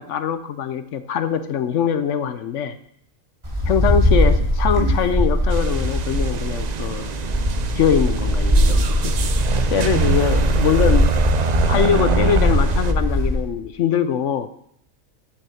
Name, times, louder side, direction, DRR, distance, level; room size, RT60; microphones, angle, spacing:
voice 1, 0.0-2.7 3.7-7.1 7.7-9.1 9.7-11.1 11.7-14.5, left 8 dB, 65° left, 11 dB, 0.9 m, -22 dB
Wind, 3.4-13.5, equal, 20° right, 2.3 m, -20 dB
sound 1, 5.5-12.9, right 7 dB, 80° right, 0.3 m, -25 dB
8.4 x 6.8 x 7.0 m, 0.70 s
omnidirectional pair, 1.5 m